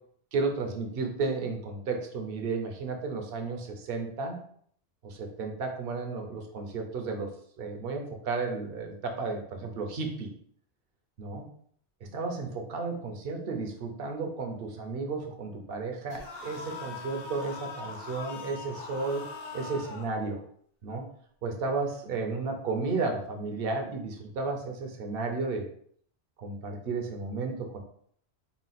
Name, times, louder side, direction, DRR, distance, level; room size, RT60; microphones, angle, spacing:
voice 1, 0.3-4.4 5.0-7.3 7.6-10.3 11.2-11.4 12.0-19.2 19.5-20.4 20.8-21.0 21.4-25.7 26.4-27.8, right 3 dB, 55° right, 3 dB, 0.9 m, -33 dB
sound 1, 16.1-20.1, left 4 dB, 55° left, 0.9 m, -41 dB
4.0 x 2.3 x 4.0 m, 0.62 s
omnidirectional pair, 1.2 m